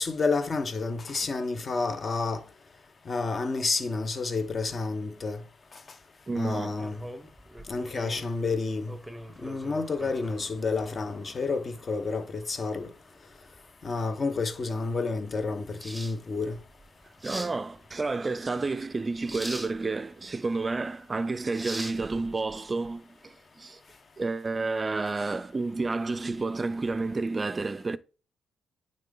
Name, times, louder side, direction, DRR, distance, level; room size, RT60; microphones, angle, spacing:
voice 1, 0.0-2.4 3.1-5.4 6.3-7.0 7.7-8.9 9.4-12.9 13.8-16.6, left 3 dB, 35° left, 1.0 m, -30 dB
voice 2, 6.3-6.9 17.2-23.8 24.2-28.0, right 3 dB, 25° right, 0.5 m, -30 dB
sound 1, 6.7-22.9, equal, 5° right, 0.9 m, -44 dB
9.1 x 3.8 x 3.8 m
cardioid pair, 90°, 0 cm